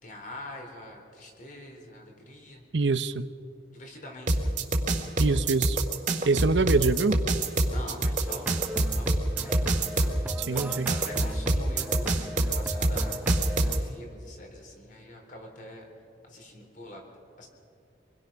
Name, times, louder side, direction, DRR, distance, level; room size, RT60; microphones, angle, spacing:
voice 1, 0.0-2.6 3.7-4.5 7.6-8.6 8.9-9.6 10.5-13.3 13.7-15.9 16.3-17.0 17.4-17.5, left 1 dB, 45° left, 2 dB, 4.2 m, -44 dB
voice 2, 2.7-3.3 5.2-5.8 6.2-7.2 10.5-11.0, right 3 dB, 80° right, 12 dB, 0.8 m, -25 dB
sound 1, 4.3-13.8, right 2 dB, 45° right, 2.1 m, -25 dB
sound 2, 8.3-13.8, right 1 dB, 10° right, 0.6 m, -36 dB
26.5 x 21.5 x 5.9 m, 2.5 s
head